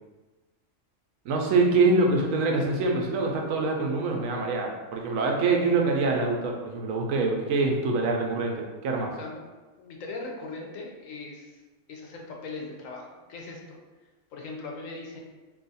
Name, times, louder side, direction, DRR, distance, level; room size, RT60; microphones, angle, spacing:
voice 1, 1.3-9.1, right 3 dB, 80° right, 1 dB, 1.0 m, -25 dB
voice 2, 9.8-11.6 11.9-13.8 14.3-15.2, left 3 dB, 80° left, 0 dB, 1.0 m, -39 dB
2.7 x 2.4 x 3.9 m, 1.3 s
omnidirectional pair, 1.4 m